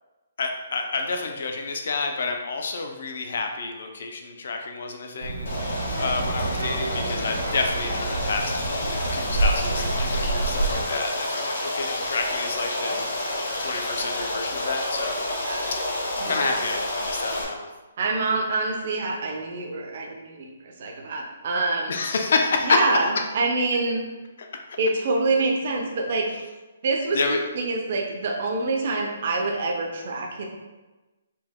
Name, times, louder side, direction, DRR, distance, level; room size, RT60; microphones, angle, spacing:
voice 1, 0.4-5.5 6.0-13.0 13.6-15.2 15.7-15.8 16.2-17.7 21.9-22.9 24.4-24.5 27.1-27.4, left 4 dB, 50° left, 4 dB, 0.5 m, -28 dB
Child speech kid speaking, 5.2-10.8, right 3 dB, 80° right, 0.7 m, -28 dB
Stream, 5.5-17.4, left 1 dB, 85° left, 1.3 m, -29 dB
voice 2, 16.2-16.6 18.0-20.5 20.8-22.0 22.6-24.1 24.8-26.3 26.8-30.5, right 3 dB, 35° right, 1 dB, 0.5 m, -26 dB
4.5 x 2.8 x 3.5 m, 1.2 s
hypercardioid pair, 180°, 0 cm